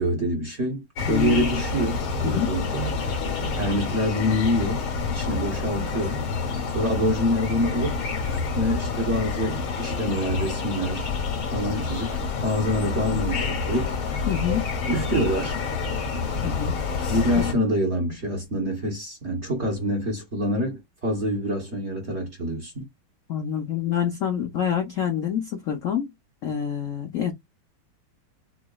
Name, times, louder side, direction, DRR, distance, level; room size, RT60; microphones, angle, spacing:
voice 1, 0.0-3.0 3.5-6.2 6.7-11.1 11.5-14.3 14.9-15.6 17.1-22.9, equal, 45° right, 1.1 m, -26 dB
sound 1, 1.0-17.5, left 4 dB, 85° left, 2.4 m, -28 dB
voice 2, 1.1-1.5 2.2-2.5 14.3-14.6 16.4-16.7 17.4-17.5 23.3-26.1 26.4-27.3, left 8 dB, 65° left, 0.7 m, -27 dB
5.9 x 2.2 x 2.3 m
omnidirectional pair, 2.2 m